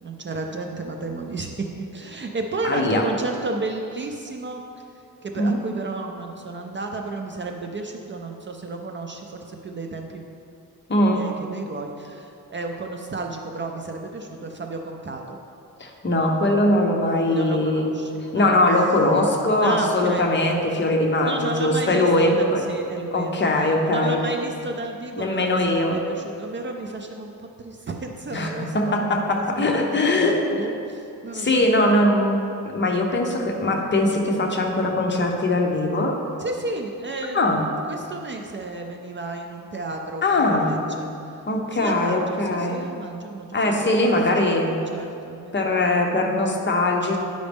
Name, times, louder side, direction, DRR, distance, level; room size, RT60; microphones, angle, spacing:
voice 1, 0.0-1.7 1.9-4.6 5.2-10.2 11.1-15.4 17.3-18.6 19.6-20.4 21.2-31.7 36.4-37.6 37.9-41.4 41.7-45.8, right 3 dB, 35° right, 3 dB, 0.4 m, -33 dB
voice 2, 2.6-3.0 5.4-5.6 10.9-11.2 15.8-17.9 18.3-22.7 23.1-24.2 25.2-26.0 28.3-30.6 31.3-32.4 32.7-36.2 37.3-37.6 40.2-40.8 41.5-42.8 43.5-44.7 45.5-47.2, left 1 dB, 30° left, 1 dB, 0.8 m, -21 dB
9.4 x 5.1 x 3.5 m, 2.6 s
wide cardioid pair, 140°, 34 cm